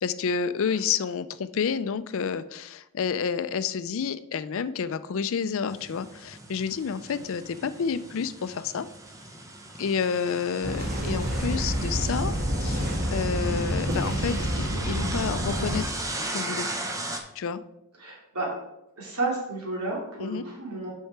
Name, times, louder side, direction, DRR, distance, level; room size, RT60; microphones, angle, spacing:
voice 1, 0.0-8.9 9.8-12.3 12.6-15.8 16.3-16.7 17.4-17.6 20.2-20.4, left 6 dB, 60° left, 13 dB, 0.4 m, -29 dB
sound 1, 5.7-17.2, right 2 dB, 15° right, 0.7 m, -37 dB
sound 2, 10.6-15.8, equal, 45° right, 1.5 m, -28 dB
voice 2, 18.0-18.5 19.0-20.9, right 2 dB, 85° right, -3 dB, 2.8 m, -31 dB
6.5 x 5.5 x 4.7 m, 0.86 s
head